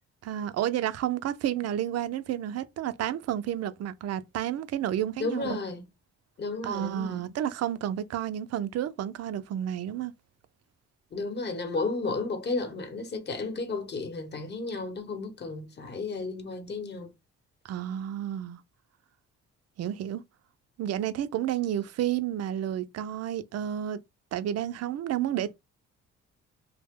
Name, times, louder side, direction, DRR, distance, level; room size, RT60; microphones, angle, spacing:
voice 1, 0.2-5.6 6.6-10.1 17.6-18.6 19.8-20.2 20.8-24.0 24.3-25.6, right 11 dB, 55° right, 0.5 m, -31 dB
voice 2, 5.2-5.9 6.4-7.2 11.1-17.1, left 3 dB, 35° left, 0.9 m, -33 dB
2.8 x 2.1 x 3.5 m
cardioid pair, 90°, 30 cm